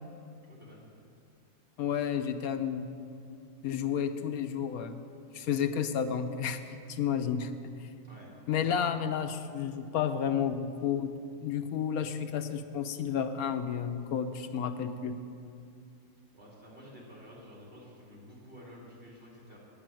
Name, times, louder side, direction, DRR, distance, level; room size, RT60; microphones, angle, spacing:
voice 1, 0.4-0.9 8.0-8.3 16.3-19.6, equal, 40° right, -4 dB, 3.0 m, -51 dB
voice 2, 1.8-2.9 3.6-5.0 5.3-6.6 6.9-7.5 7.8-7.9 8.5-11.1 11.4-15.2, left 8 dB, 90° left, 8 dB, 1.2 m, -31 dB
8.8 x 8.3 x 8.9 m, 2.4 s
omnidirectional pair, 1.5 m